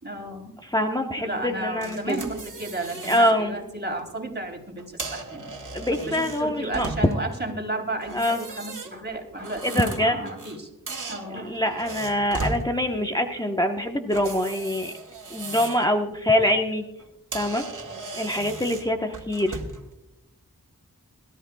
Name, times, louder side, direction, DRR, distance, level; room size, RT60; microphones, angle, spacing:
voice 1, 0.0-0.5 1.2-10.7 11.1-11.5 11.8-12.0, right 2 dB, 30° right, 2 dB, 3.5 m, -33 dB
voice 2, 0.7-2.1 3.1-3.5 5.7-6.9 8.1-8.4 9.7-10.1 11.3-14.9 15.3-16.8 17.3-17.6 18.1-19.6, left 1 dB, 10° left, 3 dB, 1.1 m, -24 dB
sound 1, 1.8-3.4 3.8-4.0 4.8-7.3 8.0-10.6 10.9-12.6 14.1-15.9 16.3-16.5 17.0-17.1 17.3-19.9, right 3 dB, 65° right, 1.9 m, -37 dB
22.0 x 13.0 x 2.3 m, 0.88 s
cardioid pair, 45°, 34 cm